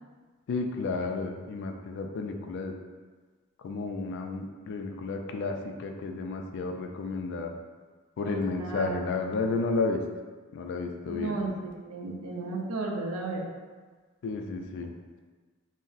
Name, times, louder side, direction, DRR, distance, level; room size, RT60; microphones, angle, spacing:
voice 1, 0.5-2.7 3.6-7.5 8.2-10.0 10.5-11.4 14.2-14.9, left 3 dB, 55° left, 4 dB, 0.3 m, -32 dB
voice 2, 8.3-9.3 11.1-13.4, right 3 dB, 90° right, 0 dB, 0.5 m, -34 dB
2.5 x 2.0 x 3.8 m, 1.4 s
head